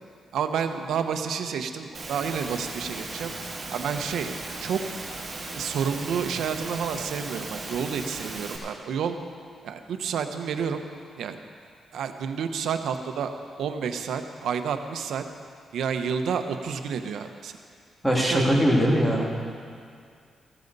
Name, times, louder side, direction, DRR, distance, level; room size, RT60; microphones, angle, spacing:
voice 1, 0.3-3.3 3.7-4.3 4.6-4.8 5.5-9.2 9.6-10.8 11.2-11.4 11.9-13.3 13.6-15.2 15.7-17.6 18.1-18.6, right 7 dB, 85° right, 7 dB, 0.8 m, -29 dB
Engine / Mechanisms, 1.9-8.6, right 3 dB, 35° right, 2.5 m, -37 dB
voice 2, 18.0-19.3, equal, 5° left, -2 dB, 2.2 m, -21 dB
15.0 x 14.0 x 4.0 m, 2.2 s
cardioid pair, 125°, 0 cm